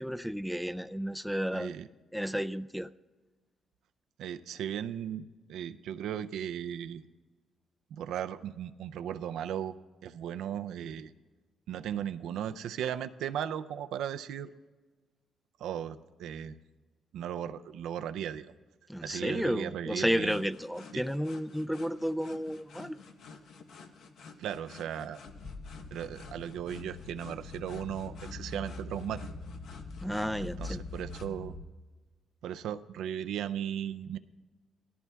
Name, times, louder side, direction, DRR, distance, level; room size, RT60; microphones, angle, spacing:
voice 1, 0.0-1.7 2.1-2.9 18.9-23.0 30.0-30.8, equal, ahead, 12 dB, 0.3 m, -32 dB
voice 2, 1.5-1.9 4.2-7.0 7.9-9.7 10.0-11.1 11.7-14.5 15.6-16.6 17.1-18.5 19.0-20.4 20.9-21.0 24.4-25.2 25.9-29.3 30.4-31.5 32.4-34.2, right 9 dB, 85° right, 10 dB, 0.4 m, -36 dB
sound 1, 20.2-31.3, left 5 dB, 75° left, 0.9 m, -52 dB
sound 2, 25.3-31.7, left 3 dB, 50° left, 0.9 m, -43 dB
17.5 x 13.5 x 2.3 m, 1.3 s
cardioid pair, 80°, 0 cm